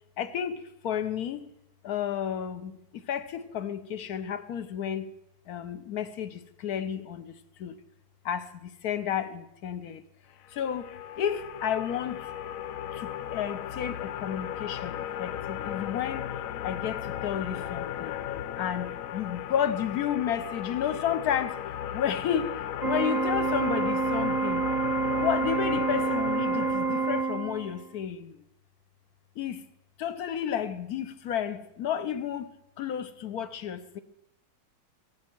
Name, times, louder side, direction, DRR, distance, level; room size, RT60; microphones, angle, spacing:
voice 1, 0.2-1.5 1.8-5.1 5.5-7.3 7.6-7.8 8.2-10.0 10.5-12.3 12.9-16.3 16.6-18.2 18.6-21.6 21.9-24.7 25.1-28.4 29.4-29.6 30.0-32.5 32.8-34.0, left 9 dB, 60° left, 1.1 m, -32 dB
sound 1, 10.4-27.2, left 10 dB, 90° left, 0.7 m, -36 dB
Organ, 22.8-27.9, right 4 dB, 25° right, 1.0 m, -28 dB
23.0 x 8.3 x 4.5 m
omnidirectional pair, 2.2 m